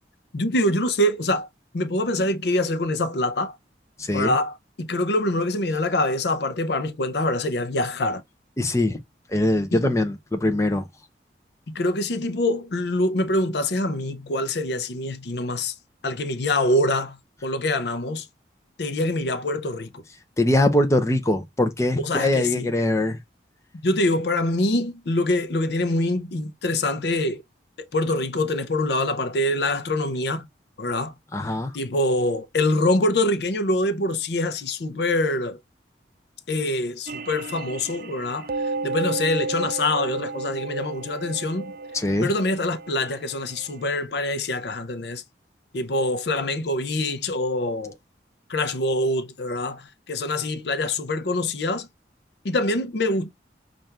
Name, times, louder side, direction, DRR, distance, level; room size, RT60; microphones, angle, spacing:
voice 1, 0.3-1.5 1.7-3.6 4.1-8.2 9.7-9.8 11.7-15.7 16.0-18.3 18.8-20.0 22.0-22.7 23.8-27.4 27.9-30.5 30.8-31.1 31.7-35.6 36.5-38.5 38.8-41.7 42.2-45.2 45.7-48.0 48.5-51.9 52.4-53.3, left 1 dB, 70° left, 0.6 m, -25 dB
voice 2, 4.0-4.3 8.6-9.0 9.3-10.9 20.4-23.2 31.3-31.8 41.9-42.3, left 1 dB, 15° left, 0.6 m, -22 dB
sound 1, 37.1-44.0, right 3 dB, 50° right, 0.4 m, -33 dB
5.7 x 2.5 x 3.3 m
head